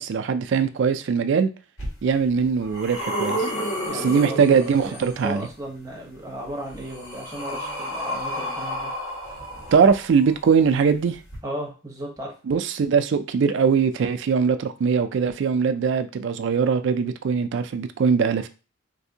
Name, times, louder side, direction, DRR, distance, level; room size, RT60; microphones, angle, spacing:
voice 1, 0.0-1.5 2.0-3.5 3.9-5.5 9.7-11.2 12.5-18.5, right 6 dB, 60° right, 0.3 m, -21 dB
sound 1, 1.8-1.9 2.4-5.2 6.4-10.3 11.3-11.4, equal, 80° left, 1.5 m, -31 dB
voice 2, 3.8-8.9 11.4-12.3, right 1 dB, 15° right, 0.8 m, -35 dB
3.3 x 2.6 x 2.7 m
head